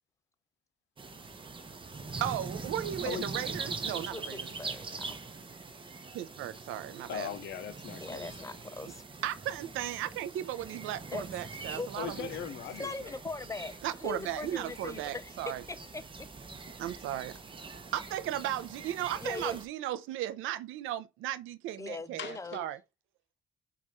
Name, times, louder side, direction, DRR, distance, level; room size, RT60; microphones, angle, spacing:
sound 1, 1.0-19.6, right 4 dB, 25° right, 0.8 m, -43 dB
voice 1, 2.2-4.5 6.1-7.4 9.2-12.3 13.8-15.6 16.8-17.3 17.9-22.8, right 12 dB, 90° right, 0.5 m, -36 dB
voice 2, 3.9-5.2 8.0-9.0 11.1-11.2 11.7-11.9 12.7-16.3 19.2-19.6 21.8-22.6, left 3 dB, 15° left, 0.5 m, -41 dB
voice 3, 7.1-8.4 11.9-13.1 22.2-22.6, left 9 dB, 65° left, 0.6 m, -39 dB
4.7 x 2.5 x 4.1 m
cardioid pair, 90°, 20 cm